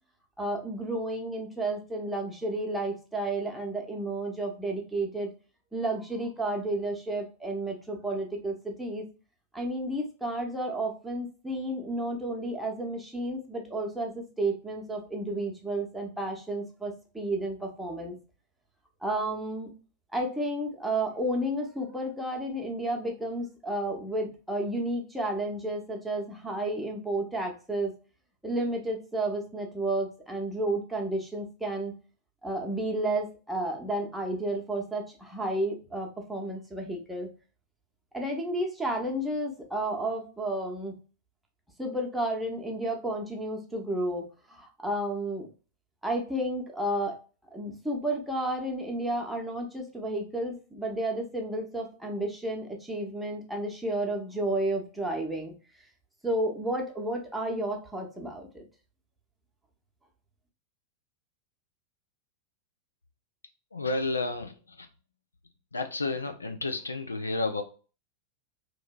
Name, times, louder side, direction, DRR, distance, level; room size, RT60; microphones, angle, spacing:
voice 1, 0.4-5.3 5.7-9.0 9.5-18.1 19.0-19.7 20.1-27.9 28.4-31.9 32.4-37.3 38.1-40.9 41.8-45.5 46.0-47.2 47.5-55.5 56.2-58.6, right 1 dB, 5° right, 0 dB, 0.7 m, -32 dB
voice 2, 63.7-64.9 65.7-67.6, left 2 dB, 80° left, 7 dB, 0.3 m, -31 dB
2.9 x 2.6 x 2.2 m, 0.35 s
figure-of-eight pair, 90°, 0 cm